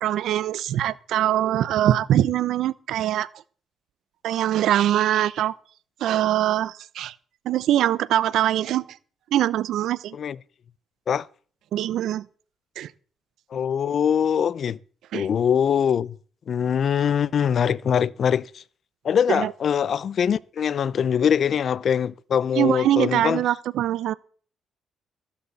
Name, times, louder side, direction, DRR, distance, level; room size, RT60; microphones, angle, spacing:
voice 1, 0.0-3.3 4.2-5.5 6.0-7.1 7.5-8.8 9.3-10.2 11.7-12.2 12.8-12.9 15.1-15.3 19.3-19.5 22.6-24.1, right 12 dB, 80° right, 0.7 m, -23 dB
voice 2, 13.5-14.8 15.1-16.2 16.5-18.6 19.0-23.4, left 8 dB, 55° left, 0.6 m, -23 dB
14.5 x 13.0 x 4.1 m
cardioid pair, 90°, 0 cm